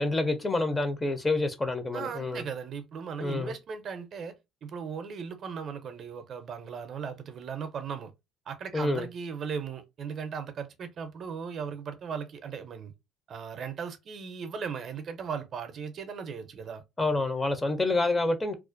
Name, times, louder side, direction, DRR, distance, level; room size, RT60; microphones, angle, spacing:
voice 1, 0.0-2.4 3.2-3.5 8.7-9.1 17.0-18.6, left 2 dB, 20° left, 0.4 m, -27 dB
voice 2, 1.9-4.3 4.6-8.1 8.5-12.9 13.3-16.8, right 6 dB, 45° right, 0.5 m, -37 dB
2.3 x 2.1 x 2.4 m
cardioid pair, 115°, 0 cm